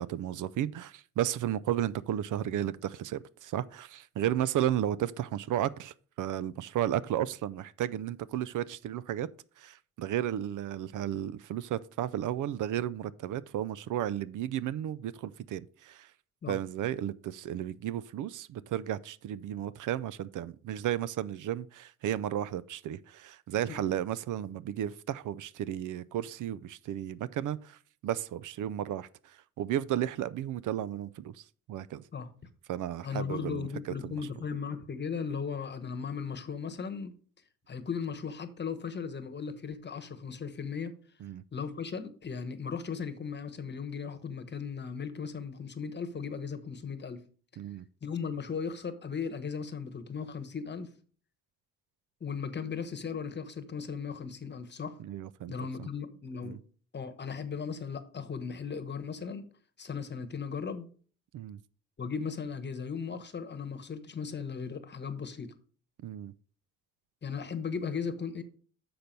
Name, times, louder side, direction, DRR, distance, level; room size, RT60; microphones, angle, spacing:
voice 1, 0.0-9.3 9.6-16.1 16.5-27.8 28.0-31.4 31.7-32.0 32.7-33.7 34.0-34.1 41.2-41.4 47.6-47.8 55.0-55.5 56.4-56.6 61.3-61.6 66.0-66.3, right 11 dB, 65° right, 0.5 m, -33 dB
voice 2, 33.0-37.1 37.7-40.9 41.5-47.2 48.0-50.9 52.2-55.0 55.5-56.6 56.9-59.4 59.8-60.9 62.0-65.5 67.2-68.4, left 6 dB, 30° left, 1.1 m, -37 dB
6.9 x 5.8 x 5.2 m
cardioid pair, 85°, 33 cm